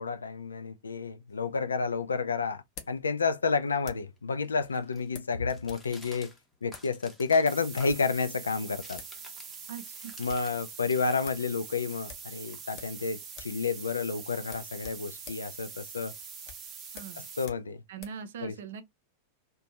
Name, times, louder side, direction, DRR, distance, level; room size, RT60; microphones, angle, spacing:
voice 1, 0.0-6.3 6.6-9.0 10.2-16.1 17.4-17.8 18.4-18.5, left 4 dB, 75° left, 0.3 m, -30 dB
sound 1, 1.3-4.2 5.1-5.9 6.1-6.2 6.7-6.9 7.7-8.2 8.7-8.8 9.0-9.2 9.5-9.6 9.9-10.5 10.9-11.0 11.2-11.5 12.1-13.0 13.3-13.6 13.9-14.0 14.4-18.2, left 7 dB, 40° left, 0.7 m, -49 dB
sound 2, 4.0-10.6 10.8-13.1, left 1 dB, 5° left, 0.7 m, -53 dB
sound 3, 7.5-17.5, right 6 dB, 25° right, 0.7 m, -44 dB
voice 2, 9.7-10.2 16.9-17.3 17.9-18.8, right 7 dB, 60° right, 0.4 m, -41 dB
2.5 x 2.2 x 2.9 m
figure-of-eight pair, 90°, 0 cm